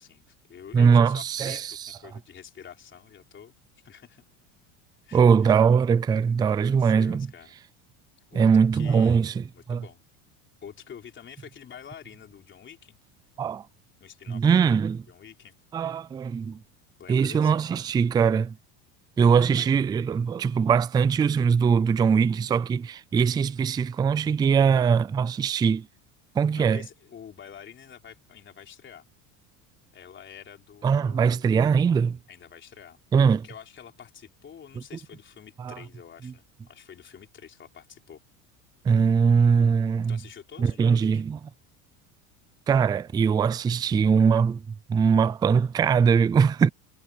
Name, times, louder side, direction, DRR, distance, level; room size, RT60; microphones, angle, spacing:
voice 1, 0.0-3.5 3.8-4.3 5.0-5.6 6.6-7.6 8.3-9.3 9.5-10.0 10.6-13.0 14.0-14.8 15.1-15.5 17.0-17.5 19.6-19.7 26.5-29.1 29.9-31.5 32.3-33.0 33.4-38.2 40.1-41.2, left 8 dB, 30° left, 3.6 m, -47 dB
voice 2, 0.7-2.0 5.1-7.3 8.3-9.8 13.4-13.6 14.3-15.0 15.7-16.6 17.1-18.6 19.2-25.9 26.3-26.8 30.8-32.2 33.1-33.4 35.6-35.8 36.2-36.3 38.8-40.2 40.6-41.5 42.7-46.7, right 6 dB, 10° right, 0.3 m, -21 dB
supercardioid pair, 120°, 39 cm